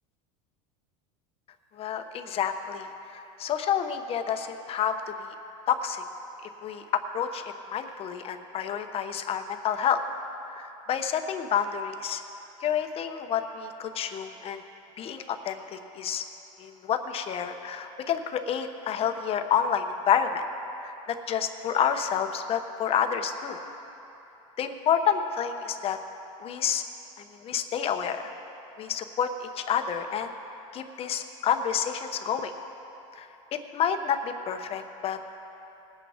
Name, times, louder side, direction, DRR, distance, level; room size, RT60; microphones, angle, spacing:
voice 1, 1.8-2.9 3.4-5.3 5.7-6.0 6.6-7.4 7.7-10.0 10.5-12.2 12.6-14.6 15.0-16.2 16.6-20.4 20.8-23.6 24.6-26.0 26.4-26.8 27.4-28.2 28.8-30.3 30.7-32.5 33.2-33.3 33.5-35.2, left 8 dB, 35° left, 7 dB, 0.9 m, -29 dB
20.5 x 8.6 x 3.6 m, 3.0 s
supercardioid pair, 125°, 17 cm